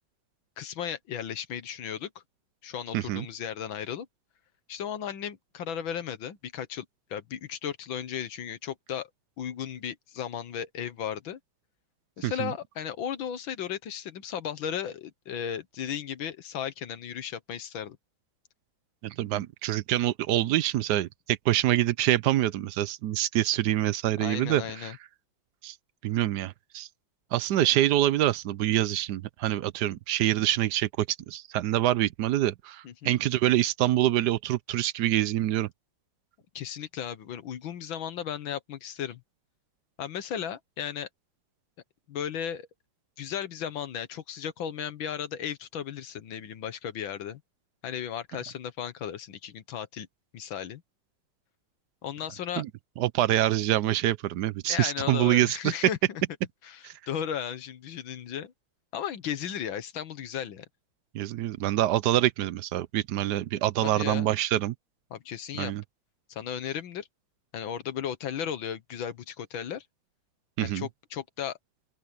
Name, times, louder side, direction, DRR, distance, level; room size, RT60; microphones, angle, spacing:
voice 1, 0.6-2.1 2.6-4.1 4.7-6.9 7.1-9.1 9.4-11.4 12.2-18.0 24.2-25.0 32.8-33.2 36.6-39.2 40.0-41.1 42.1-42.7 43.2-47.4 47.8-50.1 50.3-50.8 52.0-52.6 54.7-56.2 56.6-58.5 58.9-60.7 63.8-64.3 65.1-65.7 66.3-67.1 67.5-69.8 70.6-71.6, left 9 dB, 80° left, 1.9 m, -35 dB
voice 2, 2.9-3.3 12.2-12.5 19.0-25.0 25.6-25.7 26.0-26.9 27.3-35.7 52.6-52.7 53.0-55.7 56.8-56.9 61.1-64.7 65.6-65.8 70.6-70.9, right 13 dB, 70° right, 1.1 m, -26 dB
open air
omnidirectional pair, 2.2 m